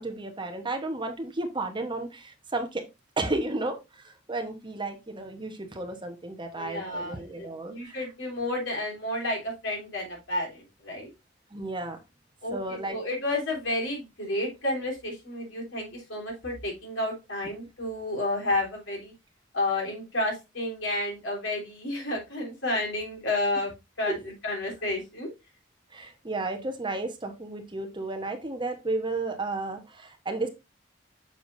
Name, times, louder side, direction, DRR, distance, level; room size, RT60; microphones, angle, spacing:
voice 1, 0.0-2.9 3.2-8.1 11.5-12.0 12.5-13.0 24.1-24.2 25.9-30.5, right 2 dB, 25° right, 5 dB, 1.1 m, -33 dB
voice 2, 6.5-11.1 12.4-19.1 19.5-23.7 24.0-24.2 24.4-25.3, left 2 dB, 70° left, -1 dB, 3.5 m, -31 dB
7.1 x 6.5 x 2.6 m, 0.24 s
head